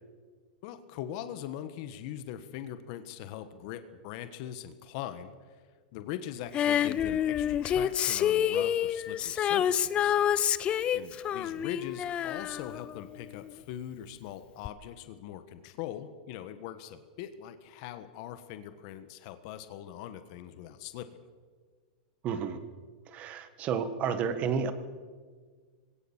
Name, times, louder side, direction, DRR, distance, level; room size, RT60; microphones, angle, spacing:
voice 1, 0.6-5.6 5.9-10.2 10.9-21.1, left 11 dB, 50° left, 10 dB, 1.4 m, -41 dB
Female singing, 6.5-13.5 14.6-14.7, left 10 dB, 25° left, 0.6 m, -28 dB
voice 2, 22.2-22.6 23.1-24.7, right 6 dB, 30° right, 10 dB, 1.7 m, -31 dB
21.0 x 17.5 x 7.3 m, 1.5 s
supercardioid pair, 150°, 4 cm